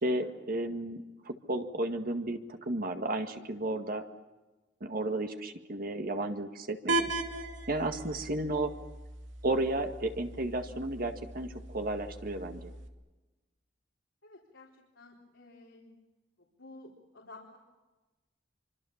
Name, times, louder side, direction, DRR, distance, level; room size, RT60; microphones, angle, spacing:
voice 1, 0.0-4.0 4.8-7.1 7.7-8.7 9.4-12.7, right 1 dB, 50° right, 6 dB, 1.9 m, -33 dB
sound 1, 6.9-12.9, right 2 dB, 85° right, 2.4 m, -38 dB
voice 2, 14.2-14.7 15.0-15.9 16.6-17.6, left 2 dB, 80° left, -2 dB, 4.0 m, -52 dB
26.0 x 25.5 x 7.3 m, 1.2 s
head